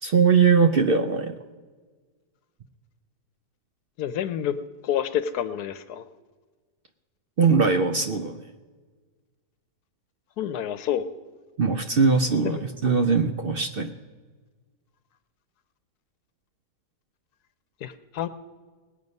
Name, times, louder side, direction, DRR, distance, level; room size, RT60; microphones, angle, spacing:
voice 1, 0.0-1.4 7.4-8.4 11.6-13.9, right 5 dB, 60° right, 7 dB, 0.6 m, -21 dB
voice 2, 4.0-4.5 4.8-6.1 10.4-11.1 12.4-12.6 17.8-18.3, left 10 dB, 75° left, 12 dB, 1.2 m, -28 dB
19.5 x 8.5 x 5.3 m, 1.4 s
omnidirectional pair, 1.7 m